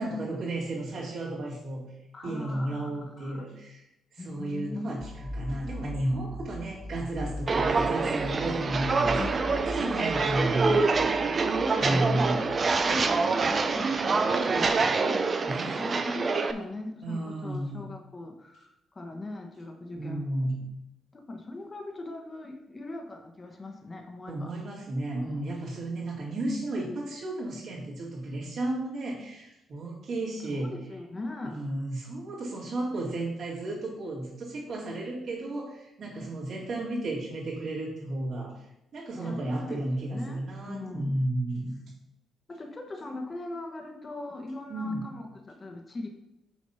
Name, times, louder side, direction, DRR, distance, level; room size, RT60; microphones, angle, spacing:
voice 1, 0.0-1.8 2.2-3.8 4.1-11.3 11.8-12.3 15.5-15.9 17.0-17.9 19.9-20.5 24.3-30.7 31.4-38.5 38.9-41.8 44.7-45.1, right 1 dB, 55° right, -8 dB, 2.5 m, -33 dB
voice 2, 2.1-3.5 4.2-4.9 9.1-9.4 11.5-20.5 21.1-24.5 25.2-25.4 30.5-31.6 39.2-41.2 42.5-46.1, left 2 dB, 30° left, 3 dB, 1.1 m, -40 dB
sound 1, 5.0-13.6, equal, 5° right, 1.5 m, -41 dB
Walk footsteps, 7.5-16.5, right 4 dB, 40° right, 0.6 m, -26 dB
6.4 x 4.2 x 5.6 m, 0.87 s
cardioid pair, 90°, 0 cm